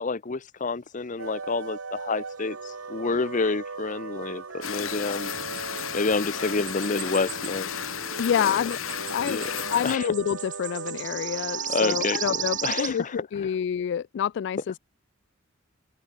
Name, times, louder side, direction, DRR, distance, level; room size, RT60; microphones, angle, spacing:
voice 1, 0.0-5.3 5.9-7.7 9.3-9.5 9.8-10.1 11.7-13.2, left 4 dB, 40° left, 0.8 m, -28 dB
sound 1, 1.2-12.8, right 4 dB, 80° right, 1.4 m, -39 dB
sound 2, 4.6-10.0, left 8 dB, 85° left, 1.3 m, -33 dB
sound 3, 5.3-5.9 6.7-7.6 7.9-13.0, right 10 dB, 40° right, 2.3 m, -35 dB
voice 2, 8.2-8.8 9.1-14.8, left 8 dB, 60° left, 0.3 m, -28 dB
open air
head